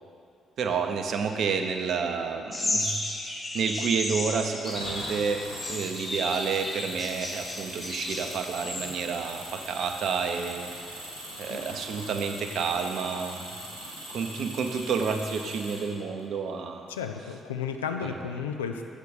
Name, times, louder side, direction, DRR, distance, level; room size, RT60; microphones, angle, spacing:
voice 1, 0.6-5.4 5.7-10.7 11.4-13.5 14.1-16.9 18.0-18.3, right 5 dB, 55° right, 5 dB, 0.6 m, -30 dB
sound 1, 2.5-8.9, left 1 dB, 30° left, 1.7 m, -33 dB
Engine, 4.6-16.2, equal, 90° right, 1.3 m, -41 dB
voice 2, 16.9-18.8, left 7 dB, 80° left, 6 dB, 0.3 m, -33 dB
8.2 x 6.0 x 5.3 m, 2.6 s
figure-of-eight pair, 40°, 0 cm